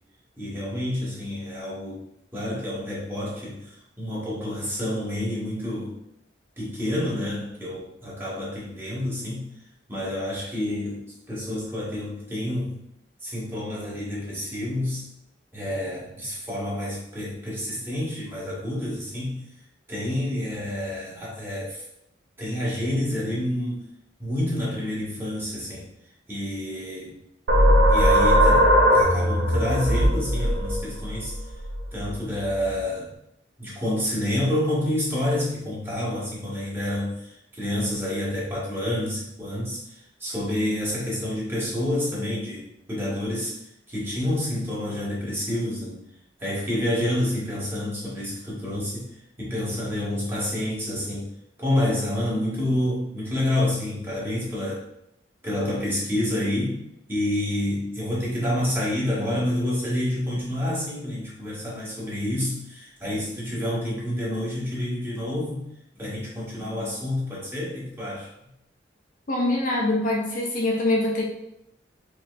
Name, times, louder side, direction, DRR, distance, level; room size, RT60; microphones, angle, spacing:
voice 1, 0.4-2.0 2.3-6.0 6.6-9.5 9.9-12.8 13.2-15.1 15.5-19.4 19.9-21.8 22.4-23.8 24.2-25.9 26.3-27.2 27.9-31.4 31.9-33.1 33.6-43.6 43.9-46.0 46.4-49.1 49.4-51.3 51.6-54.8 55.4-56.8 57.1-65.7 65.9-68.3, left 1 dB, 15° right, -7 dB, 1.3 m, -28 dB
sound 1, 27.5-32.7, equal, 65° right, 0.8 m, -20 dB
voice 2, 69.3-71.2, left 1 dB, 45° left, -2 dB, 0.6 m, -24 dB
4.9 x 2.8 x 2.4 m, 0.79 s
head